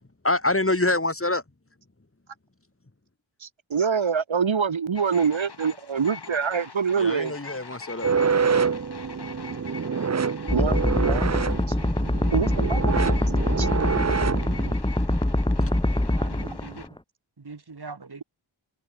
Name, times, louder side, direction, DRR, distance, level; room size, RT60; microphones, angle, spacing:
voice 1, 0.2-1.4 7.0-8.1 15.6-15.7, left 2 dB, 25° left, 2.2 m, -25 dB
voice 2, 3.4-7.3 10.5-10.8 11.0-11.2 11.7-11.8 12.3-13.2 13.6-13.7, right 6 dB, 70° right, 1.2 m, -25 dB
sound 1, 4.9-16.9, left 5 dB, 55° left, 1.6 m, -43 dB
sound 2, 8.0-14.7, right 6 dB, 35° right, 0.6 m, -26 dB
sound 3, 10.5-17.0, left 1 dB, 10° left, 1.4 m, -24 dB
voice 3, 16.0-16.9 17.4-18.2, right 4 dB, 50° right, 1.8 m, -42 dB
wide cardioid pair, 45°, 49 cm